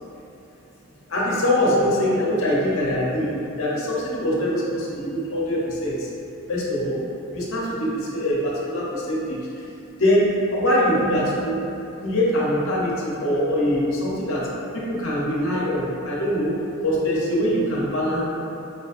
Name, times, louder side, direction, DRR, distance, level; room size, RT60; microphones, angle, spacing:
voice 1, 1.1-6.1 6.5-7.0 7.3-9.4 10.0-11.6 12.0-14.5 14.7-18.2, equal, 70° left, -5 dB, 0.8 m, -23 dB
5.0 x 2.8 x 2.4 m, 2.7 s
head